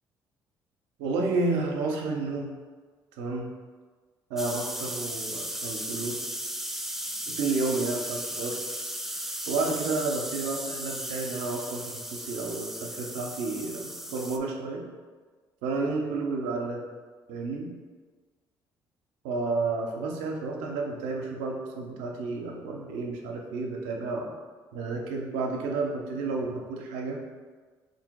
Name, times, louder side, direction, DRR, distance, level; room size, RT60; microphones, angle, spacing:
voice 1, 1.0-2.5 3.2-3.5 4.3-6.2 7.3-8.6 9.5-14.8 15.6-16.8 17.3-17.7 19.2-24.3 24.7-27.2, right 3 dB, 90° right, 0 dB, 0.6 m, -31 dB
sound 1, 4.4-14.4, right 1 dB, 5° right, 0.4 m, -36 dB
3.3 x 2.6 x 4.6 m, 1.5 s
supercardioid pair, 65°, 9 cm